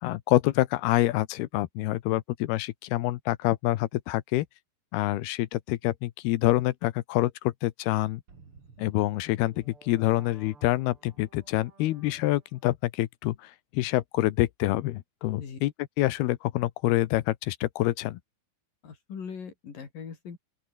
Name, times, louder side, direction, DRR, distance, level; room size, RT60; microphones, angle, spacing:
voice 1, 0.0-4.5 4.9-8.2 8.8-15.7 16.0-18.2, left 16 dB, 75° left, 2.7 m, -26 dB
sound 1, 8.3-12.7, right 5 dB, 35° right, 4.1 m, -56 dB
voice 2, 15.3-15.6 18.8-20.4, left 6 dB, 55° left, 5.2 m, -40 dB
open air
omnidirectional pair, 5.0 m